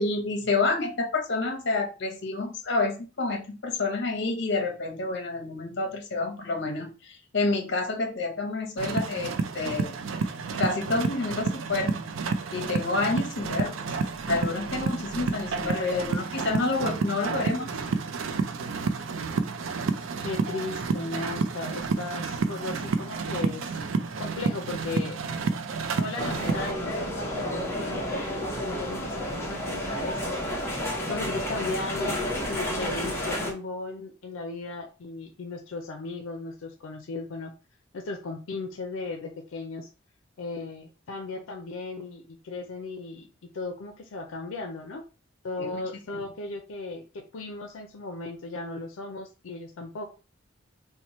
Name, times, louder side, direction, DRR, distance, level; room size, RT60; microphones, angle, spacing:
voice 1, 0.0-10.0 10.6-11.9 12.5-13.9 14.3-17.7 45.6-45.8 46.1-46.2, left 3 dB, 60° left, 3 dB, 0.8 m, -28 dB
sound 1, 8.8-26.7, right 4 dB, 80° right, 0.4 m, -30 dB
voice 2, 20.2-23.7 24.2-25.2 26.0-30.6 31.1-32.2 32.5-37.5 37.9-39.9 40.4-45.1 45.4-50.1, left 3 dB, 90° left, 4 dB, 0.5 m, -36 dB
sound 2, 26.2-33.5, equal, 15° left, 0.7 m, -31 dB
2.9 x 2.1 x 4.1 m, 0.33 s
head